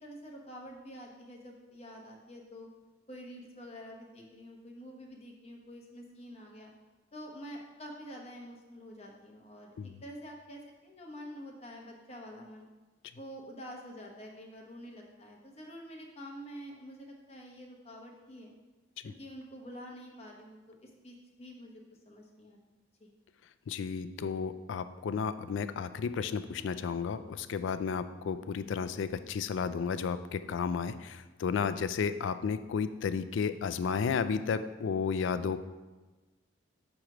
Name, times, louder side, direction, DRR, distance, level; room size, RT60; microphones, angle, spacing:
voice 1, 0.0-2.7 3.1-6.7 7.1-12.7 13.1-18.5 19.0-21.8 22.1-22.6 23.0-23.1, equal, 30° left, 0 dB, 0.9 m, -47 dB
voice 2, 23.7-35.6, left 6 dB, 65° left, 12 dB, 0.3 m, -33 dB
6.4 x 3.0 x 5.8 m, 1.2 s
head